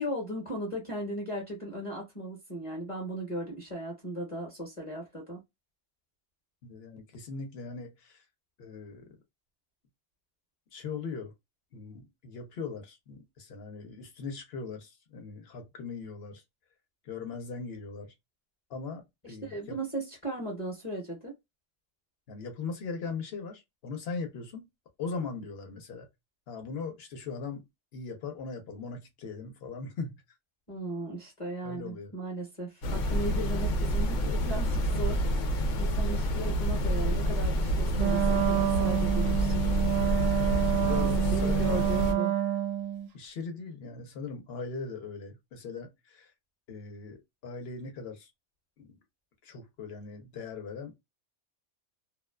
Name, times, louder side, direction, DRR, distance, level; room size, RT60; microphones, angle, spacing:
voice 1, 0.0-5.4 19.2-21.3 30.7-39.6 40.8-42.3, right 1 dB, 30° left, 0.8 m, -37 dB
voice 2, 6.6-8.2 8.6-9.1 10.7-11.3 11.7-16.4 17.0-18.1 18.7-19.8 22.3-24.7 25.0-26.1 26.5-27.7 27.9-30.2 31.6-32.1 40.7-41.8 43.1-46.3 46.7-48.3 48.8-48.9 49.4-51.0, left 4 dB, 60° left, 0.9 m, -39 dB
sound 1, 32.8-42.1, equal, 85° left, 1.0 m, -28 dB
Wind instrument woodwind instrument, 37.9-43.1, right 12 dB, 85° right, 0.9 m, -28 dB
2.4 x 2.3 x 2.2 m
omnidirectional pair, 1.3 m